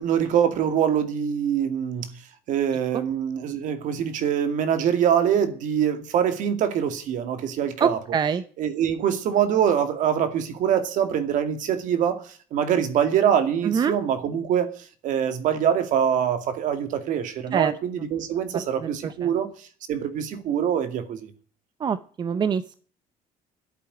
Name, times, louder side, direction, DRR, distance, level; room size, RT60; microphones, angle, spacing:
voice 1, 0.0-2.1 2.5-8.0 8.6-14.8 15.0-21.3, right 9 dB, 55° right, 2.2 m, -24 dB
voice 2, 7.8-8.4 13.7-13.9 17.5-17.7 21.8-22.8, right 7 dB, 30° right, 0.6 m, -24 dB
11.0 x 8.8 x 9.9 m
cardioid pair, 160°, 15 cm